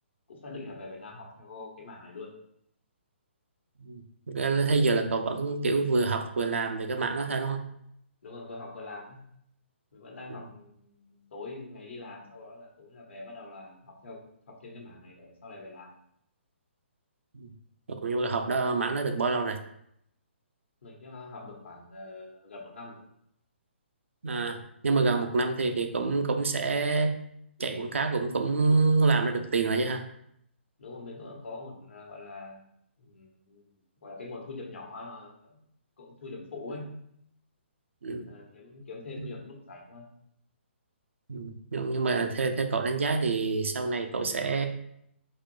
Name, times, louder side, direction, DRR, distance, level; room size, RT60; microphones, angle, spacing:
voice 1, 0.3-2.4 8.2-9.2 9.9-16.0 20.8-23.0 30.8-32.6 33.0-33.7 34.0-35.6 36.0-37.0 38.2-40.1, left 3 dB, 70° left, 0 dB, 1.0 m, -44 dB
voice 2, 4.3-7.6 17.3-17.5 18.0-19.6 24.2-24.6 24.8-27.1 27.6-30.0 38.0-38.3 41.3-44.7, right 3 dB, 80° right, 6 dB, 0.5 m, -27 dB
4.0 x 2.1 x 3.1 m, 0.73 s
hypercardioid pair, 140°, 7 cm